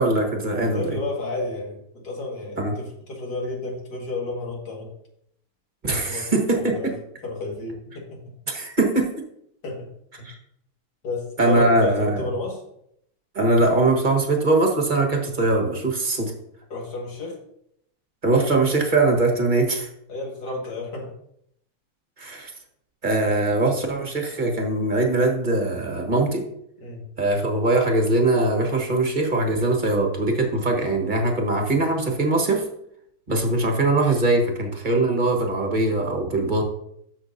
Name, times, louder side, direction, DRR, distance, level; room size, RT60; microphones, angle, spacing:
voice 1, 0.0-1.0 2.6-2.7 5.8-6.7 8.5-9.1 10.2-10.3 11.4-12.2 13.3-16.3 18.2-19.9 22.2-22.5 23.0-26.4 27.2-32.6 33.3-36.6, right 2 dB, 25° right, 2 dB, 1.4 m, -21 dB
voice 2, 0.5-4.9 6.1-6.3 6.5-6.9 7.2-8.2 9.6-9.9 10.2-10.3 11.0-12.6 16.7-17.4 20.1-21.1 26.8-27.1 33.3-33.5, left 3 dB, 55° left, -1 dB, 2.5 m, -31 dB
13.0 x 6.1 x 2.7 m, 0.73 s
omnidirectional pair, 2.1 m